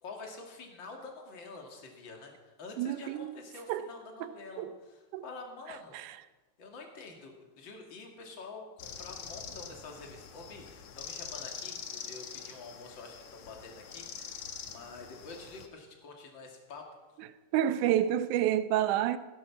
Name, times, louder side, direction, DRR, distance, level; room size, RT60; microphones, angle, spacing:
voice 1, 0.0-6.0 6.6-16.9, left 3 dB, 40° left, 2.8 m, -47 dB
voice 2, 2.8-3.3 3.7-3.9 4.2-4.3 4.6-4.7 5.1-5.2 5.9-6.2 17.2-17.3 17.5-19.2, right 11 dB, 75° right, 2.2 m, -29 dB
sound 1, 8.8-15.7, left 7 dB, 65° left, 2.4 m, -44 dB
16.5 x 12.5 x 5.9 m
omnidirectional pair, 3.7 m